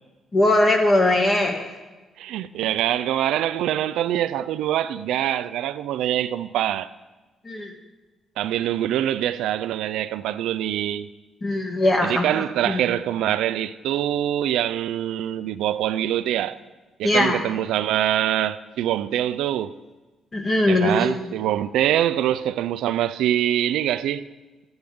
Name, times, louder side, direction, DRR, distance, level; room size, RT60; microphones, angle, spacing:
voice 1, 0.3-1.7 7.4-7.7 11.4-12.9 17.0-17.4 20.3-21.2, left 1 dB, 35° left, 1.8 m, -21 dB
voice 2, 2.2-6.9 8.4-11.1 12.0-16.6 17.0-19.8 20.7-24.3, right 11 dB, 85° right, 0.4 m, -24 dB
13.0 x 8.7 x 3.6 m
cardioid pair, 90°, 0 cm